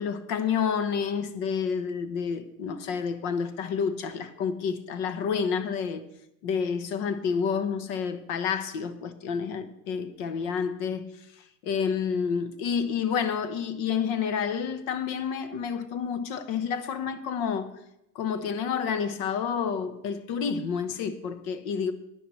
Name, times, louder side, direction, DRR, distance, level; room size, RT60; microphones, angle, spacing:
voice 1, 0.0-6.1 6.4-11.1 11.6-17.7 18.1-21.9, left 6 dB, 55° left, 1.1 m, -29 dB
16.0 x 10.0 x 3.2 m
supercardioid pair, 120°, 48 cm